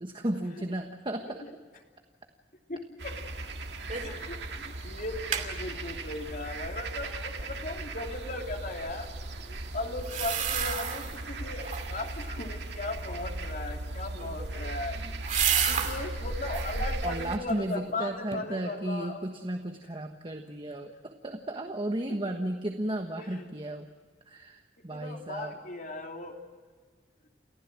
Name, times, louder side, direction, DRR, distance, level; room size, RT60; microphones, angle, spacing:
voice 1, 0.0-1.4 17.0-23.9 24.3-25.5, right 1 dB, 30° right, 5 dB, 1.4 m, -34 dB
voice 2, 2.7-3.2 4.0-15.0 15.7-19.2 22.1-22.4 23.2-23.5 24.9-26.4, left 2 dB, 50° left, 2 dB, 2.9 m, -38 dB
sound 1, 3.0-17.4, right 2 dB, 75° right, 2.0 m, -37 dB
sound 2, 3.9-4.2 4.6-4.7 5.0-5.5 10.0-11.2 11.6-12.1 14.1-16.0 16.4-16.8 17.3-18.0 18.3-18.4, right 7 dB, 45° right, 2.5 m, -31 dB
29.5 x 15.5 x 7.6 m, 1.6 s
head